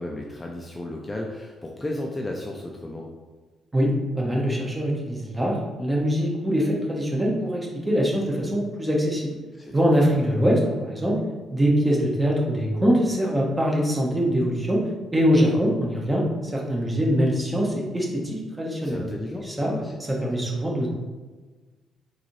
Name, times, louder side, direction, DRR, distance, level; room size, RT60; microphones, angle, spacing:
voice 1, 0.0-3.1 9.6-9.7 18.8-20.3, left 1 dB, 15° left, 0 dB, 0.4 m, -34 dB
voice 2, 3.7-9.4 9.7-11.2 11.5-14.8 15.1-19.0 19.4-19.7 20.1-20.9, equal, 15° right, -2 dB, 0.9 m, -23 dB
3.9 x 2.7 x 3.0 m, 1.3 s
cardioid pair, 90°, 0 cm